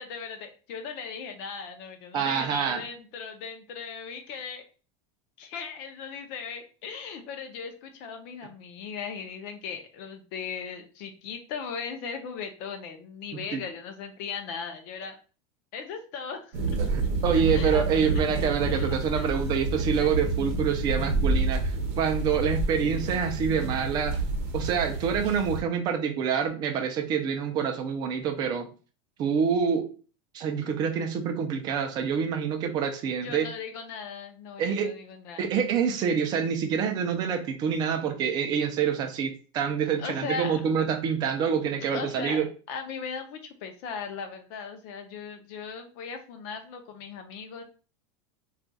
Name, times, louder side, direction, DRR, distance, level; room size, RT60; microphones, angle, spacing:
voice 1, 0.0-4.6 5.4-15.2 15.7-16.7 17.0-18.1 18.7-19.3 20.0-20.2 33.2-35.5 40.0-40.6 41.9-47.6, left 6 dB, 45° left, 6 dB, 0.6 m, -38 dB
voice 2, 2.1-2.8 13.5-13.6 16.8-24.1 24.5-28.7 29.2-29.9 30.3-33.5 34.6-34.9 35.4-42.5, right 7 dB, 25° right, 5 dB, 0.4 m, -27 dB
sound 1, 16.5-25.6, right 3 dB, 65° right, 0.8 m, -28 dB
2.4 x 2.3 x 3.9 m, 0.37 s
supercardioid pair, 170°, 15 cm